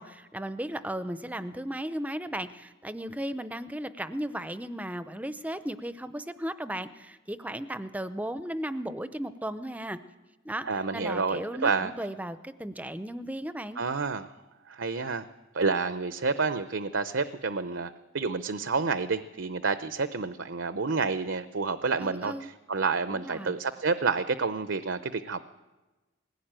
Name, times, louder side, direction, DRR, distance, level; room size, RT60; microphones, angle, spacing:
voice 1, 0.0-10.0 10.4-13.8 22.0-22.5 23.1-23.6, right 1 dB, 5° right, 12 dB, 0.6 m, -35 dB
voice 2, 10.6-11.9 13.8-14.3 14.7-15.2 15.5-25.4, right 4 dB, 65° right, 11 dB, 0.7 m, -29 dB
20.0 x 16.5 x 8.9 m, 1.1 s
head